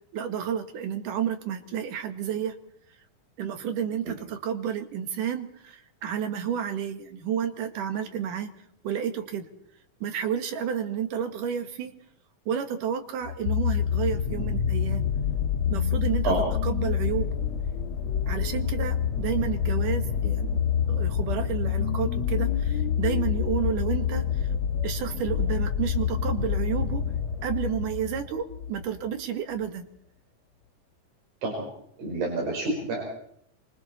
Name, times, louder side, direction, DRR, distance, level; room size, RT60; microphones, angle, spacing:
voice 1, 0.1-2.6 3.4-8.5 8.8-9.5 10.0-12.0 12.5-15.0 15.7-16.3 16.6-17.3 18.3-20.5 20.9-24.5 24.8-27.0 27.4-29.9, right 8 dB, 70° right, 8 dB, 3.2 m, -31 dB
sound 1, 13.2-28.8 29.6-29.7, left 8 dB, 55° left, 2.5 m, -27 dB
voice 2, 32.0-33.0, right 2 dB, 85° right, -1 dB, 6.9 m, -28 dB
25.5 x 25.0 x 4.3 m, 0.68 s
omnidirectional pair, 4.0 m